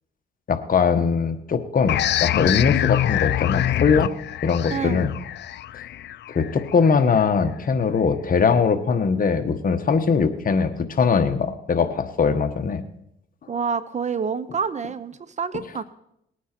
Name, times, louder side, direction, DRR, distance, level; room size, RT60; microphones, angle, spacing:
voice 1, 0.5-4.1 4.4-5.1 6.3-12.8, left 5 dB, 45° left, 8 dB, 1.3 m, -21 dB
sound 1, 1.9-7.2, left 12 dB, 60° left, 0.5 m, -25 dB
voice 2, 4.7-5.0 13.5-15.8, right 6 dB, 35° right, 15 dB, 0.7 m, -27 dB
20.0 x 9.2 x 4.5 m, 0.80 s
cardioid pair, 90°, 20 cm